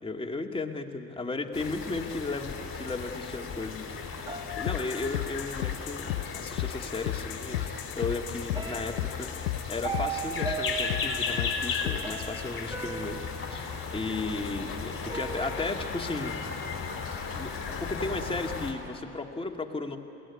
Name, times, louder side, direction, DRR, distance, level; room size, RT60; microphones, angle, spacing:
voice 1, 0.0-13.2 13.5-16.4 17.3-20.0, left 3 dB, 15° left, 3 dB, 2.1 m, -35 dB
sound 1, 1.5-18.7, left 5 dB, 35° left, 3.8 m, -36 dB
sound 2, 4.3-5.7 6.9-7.0 7.5-8.0 8.5-14.5 15.1-15.9, right 5 dB, 10° right, 2.1 m, -39 dB
sound 3, 4.7-12.3, left 17 dB, 90° left, 0.5 m, -34 dB
21.0 x 17.5 x 9.8 m, 2.8 s
hypercardioid pair, 75°, 38 cm